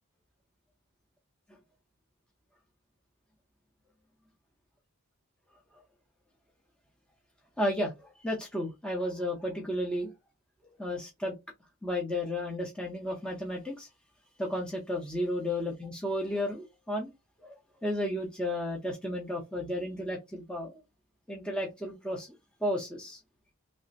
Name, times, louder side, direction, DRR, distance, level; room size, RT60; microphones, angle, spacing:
voice 1, 7.6-10.1 10.8-11.3 11.8-13.9 14.4-17.1 17.4-17.5 17.8-20.7 21.3-22.3 22.6-23.2, left 1 dB, 5° left, 0.6 m, -33 dB
3.2 x 2.0 x 3.9 m
head